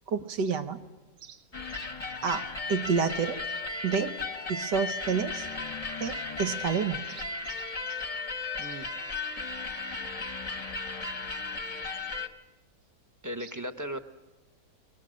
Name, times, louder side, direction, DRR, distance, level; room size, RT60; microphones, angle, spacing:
voice 1, 0.1-0.8 1.2-1.4 2.2-3.4 3.8-4.1 4.5-5.5 6.0-7.3, right 6 dB, 85° right, 8 dB, 1.8 m, -29 dB
sound 1, 1.5-12.3, left 3 dB, 25° left, 0.9 m, -35 dB
voice 2, 13.2-14.0, right 1 dB, 15° right, 8 dB, 0.7 m, -36 dB
29.5 x 22.0 x 6.4 m, 1.1 s
omnidirectional pair, 1.8 m